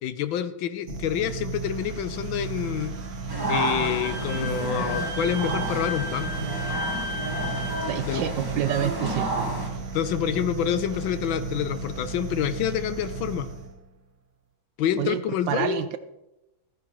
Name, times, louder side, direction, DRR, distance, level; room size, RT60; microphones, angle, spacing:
voice 1, 0.0-2.9 3.5-6.5 8.0-8.2 9.9-13.5 14.8-15.9, left 10 dB, 70° left, 12 dB, 1.4 m, -27 dB
sound 1, 0.9-13.8, right 4 dB, 45° right, 1.1 m, -34 dB
sound 2, 3.3-9.7, right 1 dB, 10° right, 1.3 m, -31 dB
Wind instrument woodwind instrument, 4.0-8.0, left 2 dB, 15° left, 2.3 m, -35 dB
voice 2, 7.8-9.5 15.0-16.0, right 11 dB, 75° right, 11 dB, 1.1 m, -28 dB
14.5 x 14.0 x 3.1 m, 0.97 s
omnidirectional pair, 2.4 m